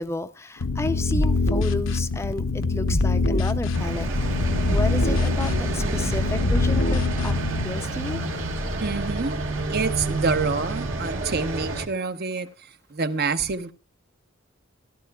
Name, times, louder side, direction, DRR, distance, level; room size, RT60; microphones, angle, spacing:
voice 1, 0.0-7.4 7.6-8.2, left 2 dB, 15° left, 0.4 m, -32 dB
sound 1, 0.6-7.6, left 3 dB, 75° left, 0.8 m, -24 dB
sound 2, 3.7-11.9, right 2 dB, 75° right, 1.8 m, -28 dB
voice 2, 8.8-12.5 12.9-13.7, right 4 dB, 50° right, 0.7 m, -27 dB
16.0 x 12.0 x 2.3 m
head